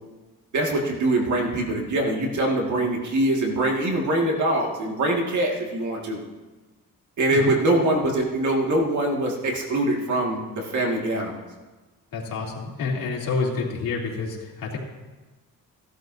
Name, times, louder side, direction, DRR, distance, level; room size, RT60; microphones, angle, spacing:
voice 1, 0.5-6.2 7.2-11.4, right 1 dB, 55° right, 0 dB, 1.9 m, -23 dB
voice 2, 12.1-14.8, left 4 dB, 75° left, -3 dB, 2.8 m, -28 dB
16.5 x 12.0 x 2.7 m, 1.2 s
cardioid pair, 120°, 35 cm